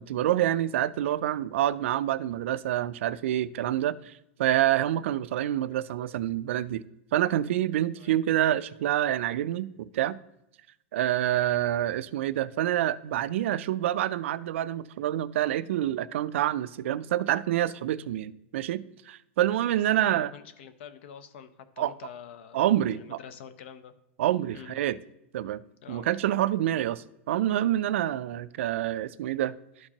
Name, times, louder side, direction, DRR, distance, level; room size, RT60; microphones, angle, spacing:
voice 1, 0.0-4.1 4.4-6.8 7.1-10.2 10.9-20.3 21.8-21.9 22.5-23.2 24.2-25.0 25.3-25.6 25.9-29.6, right 12 dB, 75° right, 0.3 m, -27 dB
voice 2, 20.0-22.6 22.9-23.9 24.5-24.8 25.8-26.1, left 8 dB, 60° left, 0.7 m, -46 dB
12.0 x 4.4 x 2.9 m
supercardioid pair, 155°, 7 cm